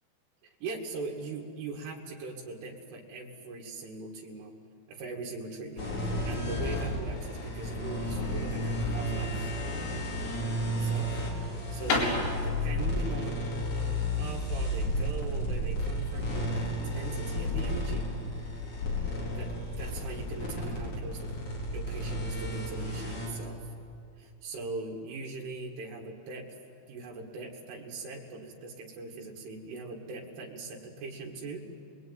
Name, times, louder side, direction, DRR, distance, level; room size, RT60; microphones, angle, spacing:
voice 1, 0.4-4.5 4.9-9.5 10.8-11.2 11.7-13.7 14.2-18.1 19.2-21.3 21.7-23.6 24.2-26.5 26.9-31.8, right 3 dB, 90° right, -2 dB, 4.5 m, -40 dB
sound 1, 5.8-23.3, left 1 dB, 40° left, 5.4 m, -32 dB
sound 2, 10.7-15.6, left 3 dB, 80° left, 6.5 m, -34 dB
28.5 x 21.5 x 9.6 m, 2.5 s
omnidirectional pair, 5.5 m